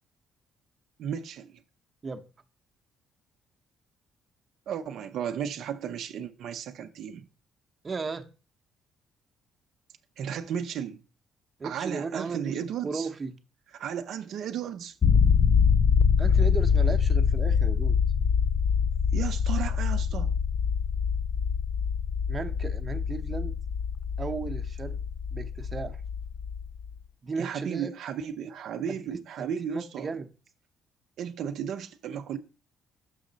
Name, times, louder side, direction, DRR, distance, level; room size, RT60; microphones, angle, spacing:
voice 1, 1.0-1.6 4.7-7.3 10.2-11.0 11.6-13.1 13.7-15.0 19.1-20.3 27.4-30.1 31.2-32.4, right 8 dB, 70° right, 0.5 m, -34 dB
voice 2, 7.8-8.3 11.6-13.3 16.2-18.0 22.3-23.6 24.2-25.0 25.3-26.0 27.2-27.9 28.9-29.0 29.4-30.3, right 4 dB, 35° right, 0.8 m, -35 dB
sound 1, 15.0-26.9, left 6 dB, 40° left, 0.4 m, -25 dB
6.4 x 5.0 x 3.9 m
cardioid pair, 85°, 0 cm